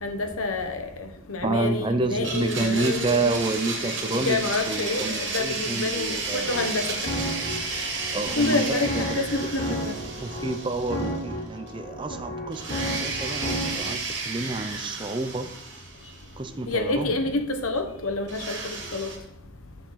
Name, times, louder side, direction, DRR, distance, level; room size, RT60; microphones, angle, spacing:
voice 1, 0.0-3.5 3.8-7.0 7.7-7.8 8.4-10.0 16.7-19.1, left 2 dB, 85° left, 1.1 m, -28 dB
voice 2, 1.4-4.4 4.7-6.5 8.1-9.2 9.7-9.8 10.2-15.5 16.4-17.2, right 3 dB, 25° right, 0.5 m, -29 dB
Domestic sounds home sounds, 2.2-11.4 11.7-11.8 12.5-16.5 18.3-19.2, right 3 dB, 60° right, 2.1 m, -33 dB
sound 1, 6.2-13.9, equal, 50° left, 2.3 m, -33 dB
6.7 x 6.3 x 5.7 m
head